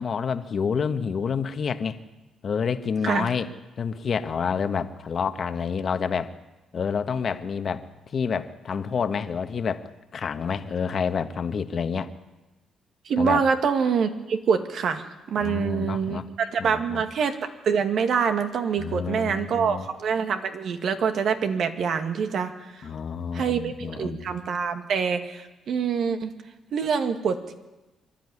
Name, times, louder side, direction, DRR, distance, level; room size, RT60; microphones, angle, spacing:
voice 1, 0.0-2.0 2.4-3.5 3.8-6.3 6.7-7.8 8.1-12.1 13.2-13.4 15.4-16.2 16.6-17.0 18.8-19.9 22.8-24.3, left 6 dB, 50° left, 9 dB, 1.3 m, -28 dB
voice 2, 13.1-22.9 23.3-26.3 26.7-27.5, right 6 dB, 65° right, 7 dB, 2.0 m, -25 dB
25.0 x 12.0 x 9.9 m, 1.1 s
cardioid pair, 90°, 0 cm